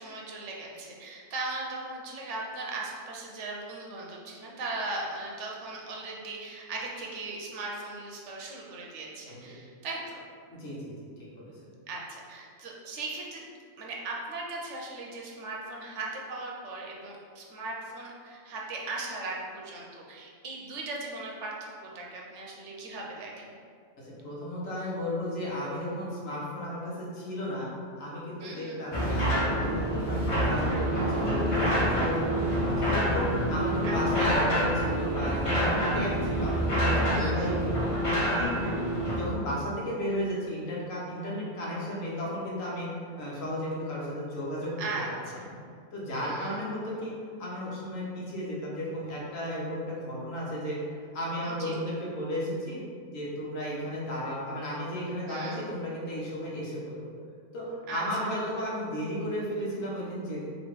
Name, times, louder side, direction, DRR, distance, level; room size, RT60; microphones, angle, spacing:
voice 1, 0.0-10.2 11.9-13.4 13.8-23.5 28.4-28.8 33.8-34.0 37.1-37.5 44.8-45.5 46.2-46.6 51.4-51.9 55.3-55.6 57.9-58.3, right 2 dB, 65° right, -2 dB, 0.9 m, -38 dB
voice 2, 10.5-11.1 11.4-11.5 24.0-38.8 39.1-42.9 43.2-44.7 45.5-45.6 45.9-47.1 47.4-50.8 51.1-52.8 53.1-57.1 57.5-60.5, equal, 70° left, -5 dB, 1.4 m, -34 dB
sound 1, 28.9-39.2, equal, 30° left, 0.7 m, -27 dB
3.1 x 3.0 x 4.5 m, 2.2 s
omnidirectional pair, 1.4 m